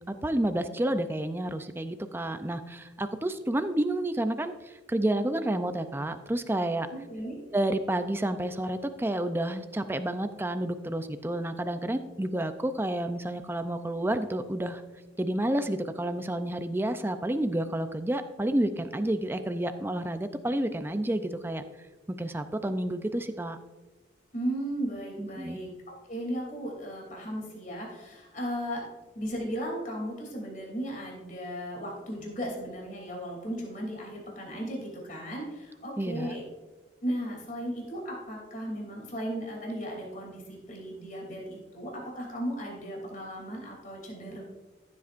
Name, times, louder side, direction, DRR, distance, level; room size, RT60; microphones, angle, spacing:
voice 1, 0.1-6.9 7.5-14.8 15.2-21.6 22.2-23.6 25.2-25.6 36.0-36.3, right 1 dB, 10° right, 9 dB, 0.4 m, -30 dB
voice 2, 6.9-7.4 24.3-25.7 26.1-28.8 29.1-36.4 37.0-44.4, equal, 45° left, -1 dB, 3.0 m, -36 dB
14.5 x 8.4 x 2.5 m, 1.2 s
head